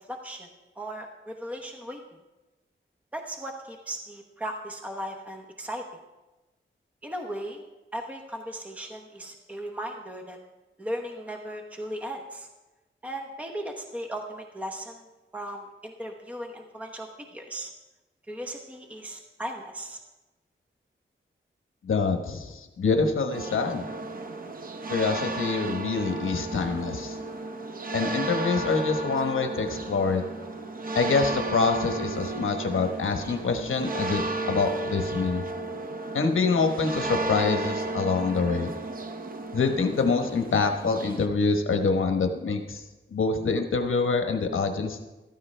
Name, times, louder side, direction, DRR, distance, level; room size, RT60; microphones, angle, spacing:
voice 1, 0.1-0.5 0.8-2.0 3.1-5.8 7.0-7.7 7.9-10.4 10.8-12.5 13.0-15.0 15.3-17.7 18.3-20.0, right 1 dB, 5° right, 3 dB, 0.9 m, -37 dB
voice 2, 21.8-23.8 24.9-27.1 27.9-30.2 30.9-34.2 34.5-35.4 36.1-38.7 39.5-42.8 43.1-45.1, left 4 dB, 75° left, 5 dB, 1.1 m, -25 dB
sound 1, 23.3-41.3, right 2 dB, 45° right, 0.8 m, -33 dB
14.5 x 13.5 x 3.3 m, 1.1 s
wide cardioid pair, 165°, 21 cm